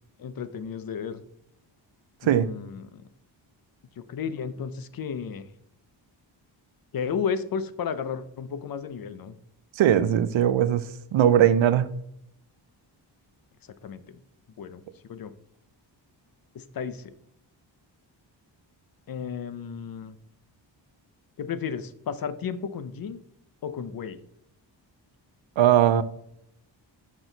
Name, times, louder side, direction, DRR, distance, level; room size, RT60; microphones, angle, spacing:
voice 1, 0.2-1.2 2.2-3.0 4.0-5.5 6.9-9.3 13.8-14.2 14.6-15.3 16.5-17.1 19.1-20.2 21.4-23.2 23.6-24.2, left 6 dB, 50° left, 0.6 m, -33 dB
voice 2, 9.8-10.8 11.1-11.9 25.6-26.0, right 10 dB, 80° right, 0.7 m, -19 dB
6.2 x 6.1 x 3.9 m
wide cardioid pair, 130°, 45 cm